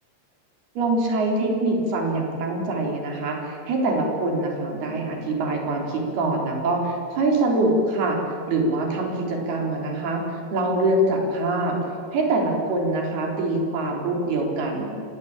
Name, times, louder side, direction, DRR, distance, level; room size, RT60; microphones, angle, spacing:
voice 1, 0.8-8.2 8.5-11.8 12.1-14.9, right 2 dB, 80° right, 1 dB, 5.7 m, -24 dB
28.5 x 17.5 x 8.9 m, 2.9 s
omnidirectional pair, 4.4 m